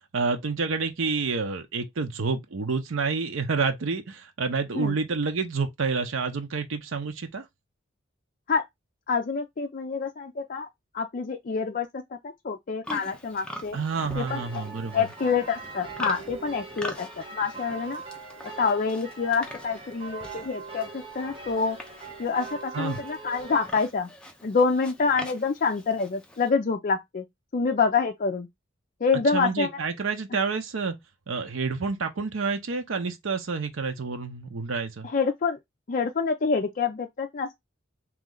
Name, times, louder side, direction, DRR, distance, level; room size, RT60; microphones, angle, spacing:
voice 1, 0.1-7.4 13.7-15.1 22.7-23.0 29.3-31.0 31.3-35.1, right 4 dB, 80° right, 0.7 m, -28 dB
voice 2, 9.1-10.7 10.9-13.8 14.2-14.6 14.9-18.0 18.6-21.8 22.2-24.1 24.4-27.2 27.5-28.5 29.0-29.7 35.0-35.6 35.9-37.5, left 5 dB, 45° left, 0.4 m, -27 dB
Livestock farm animals working animals, 12.8-26.5, left 1 dB, 5° left, 0.7 m, -43 dB
sound 1, 14.1-23.7, right 3 dB, 30° right, 1.2 m, -42 dB
3.1 x 3.1 x 3.7 m
head